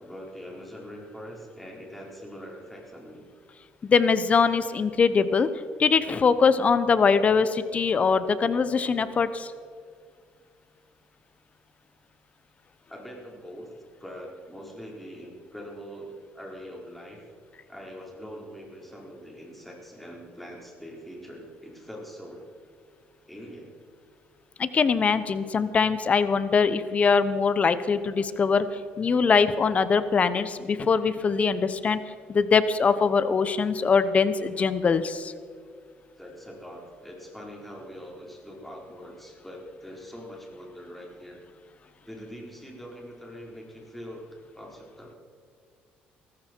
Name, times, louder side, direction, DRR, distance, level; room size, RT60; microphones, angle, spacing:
voice 1, 0.0-3.2 12.9-13.7 14.0-17.2 17.7-22.4 23.3-23.8 36.2-41.4 42.0-44.2 44.5-45.2, equal, 5° left, -2 dB, 4.5 m, -43 dB
voice 2, 3.8-5.5 5.8-9.5 24.6-28.7 29.0-32.0 32.3-35.3, left 5 dB, 35° left, 13 dB, 1.0 m, -22 dB
18.0 x 15.0 x 4.6 m, 2.1 s
cardioid pair, 100°, 4 cm